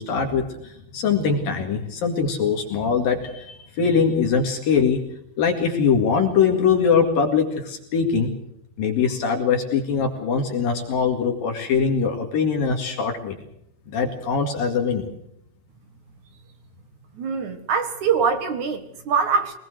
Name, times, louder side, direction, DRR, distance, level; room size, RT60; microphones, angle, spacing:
voice 1, 0.0-5.0 5.4-8.3 8.8-13.4 13.9-15.1, left 6 dB, 60° left, 3 dB, 3.7 m, -22 dB
voice 2, 17.1-19.5, right 6 dB, 55° right, 8 dB, 2.6 m, -23 dB
23.5 x 20.5 x 6.4 m, 0.77 s
omnidirectional pair, 4.8 m